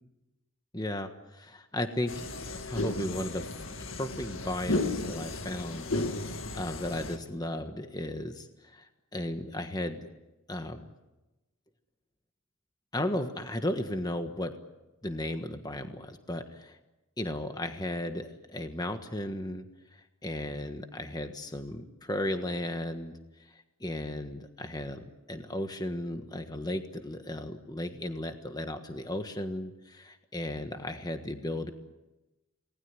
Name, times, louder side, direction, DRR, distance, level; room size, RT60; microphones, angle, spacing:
voice 1, 0.7-2.3 2.7-3.5 3.8-5.9 6.1-6.3 6.5-10.1 10.5-10.9 12.9-14.5 15.0-16.8 17.2-19.6 19.9-23.1 23.5-25.0 25.3-31.7, left 1 dB, 20° left, 6 dB, 1.4 m, -35 dB
sound 1, 2.1-7.2, left 2 dB, 70° left, 2.0 m, -34 dB
28.5 x 20.0 x 9.7 m, 1.1 s
head